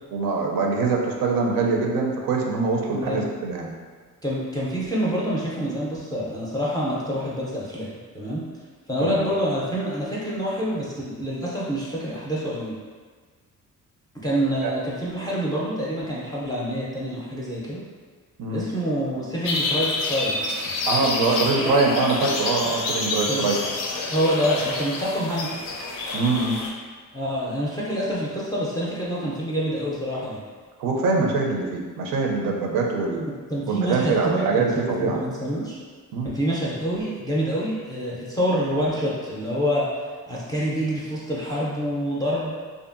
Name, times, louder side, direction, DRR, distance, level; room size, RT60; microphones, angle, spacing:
voice 1, 0.1-3.7 9.0-9.3 14.6-14.7 18.4-18.6 20.9-23.6 26.1-26.6 30.8-33.3 33.7-35.2 36.1-36.3, right 3 dB, 90° right, 0 dB, 0.5 m, -23 dB
voice 2, 2.9-3.2 4.2-7.9 8.1-8.4 8.9-12.8 14.2-17.8 18.5-20.4 23.3-23.5 24.1-25.7 27.1-30.4 33.5-35.8 36.2-39.9 40.3-42.5, equal, 10° left, -6 dB, 0.4 m, -26 dB
sound 1, 19.4-26.7, left 3 dB, 70° left, 0.5 m, -28 dB
2.6 x 2.5 x 2.4 m, 1.5 s
cardioid pair, 110°, 33 cm